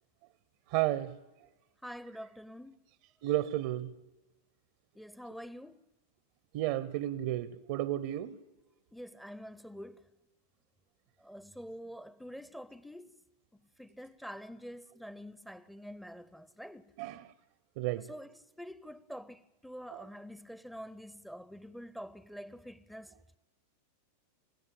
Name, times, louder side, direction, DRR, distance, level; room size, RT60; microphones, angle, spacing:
voice 1, 0.7-1.2 3.2-3.9 6.5-8.4 17.0-17.3 17.8-18.1 19.9-20.1, right 14 dB, 50° right, 0.8 m, -32 dB
voice 2, 1.8-2.9 4.9-5.9 8.9-10.1 11.2-13.2 13.5-16.9 17.9-23.4, equal, ahead, 0.7 m, -47 dB
28.5 x 17.0 x 8.9 m
figure-of-eight pair, 90°, 0 cm